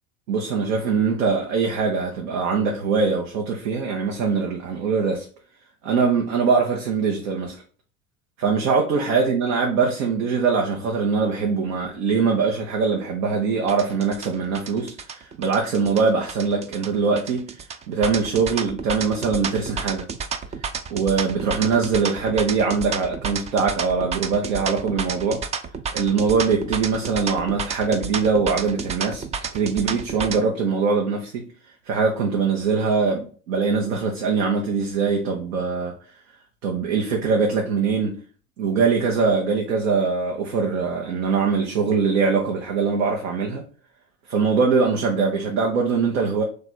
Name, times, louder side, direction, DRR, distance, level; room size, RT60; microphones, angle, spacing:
voice 1, 0.3-5.3 5.8-7.6 8.4-17.5 17.9-20.1 20.9-25.4 25.9-29.2 29.5-31.4 31.9-35.9 36.6-38.2 38.6-43.6 44.3-46.4, right 5 dB, 70° right, 1.0 m, -22 dB
sound 1, 13.7-30.4, right 6 dB, 20° right, 0.3 m, -30 dB
3.3 x 3.3 x 4.2 m
hypercardioid pair, 80°, 39 cm